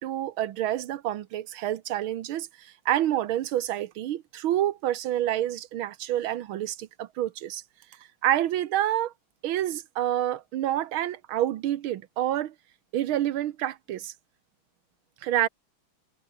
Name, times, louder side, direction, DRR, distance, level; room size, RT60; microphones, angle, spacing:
voice 1, 0.0-7.6 8.2-9.1 9.4-12.5 12.9-14.1 15.2-15.5, right 12 dB, 85° right, 1.8 m, -28 dB
omnidirectional pair, 2.2 m